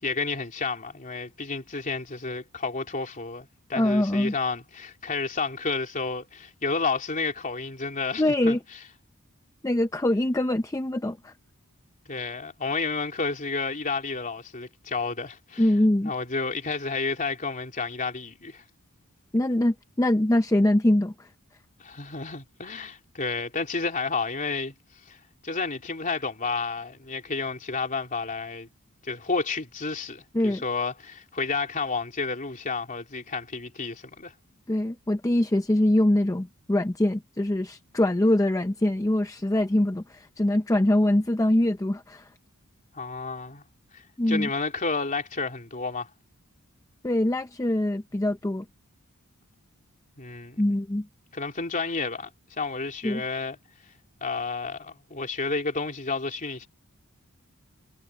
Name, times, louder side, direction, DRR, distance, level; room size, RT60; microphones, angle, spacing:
voice 1, 0.0-8.6 12.1-15.6 16.0-18.6 21.8-24.7 25.1-25.2 25.4-28.7 29.0-34.3 42.9-43.6 43.9-46.1 50.2-50.6 51.3-52.3 52.6-53.6 54.2-56.7, left 4 dB, 35° left, 3.4 m, -31 dB
voice 2, 3.7-4.3 8.2-8.6 9.6-11.3 15.6-16.1 19.3-21.3 30.3-30.6 34.7-42.3 44.2-44.5 47.0-48.7 50.6-51.1 53.0-53.2, left 1 dB, 15° left, 0.6 m, -23 dB
head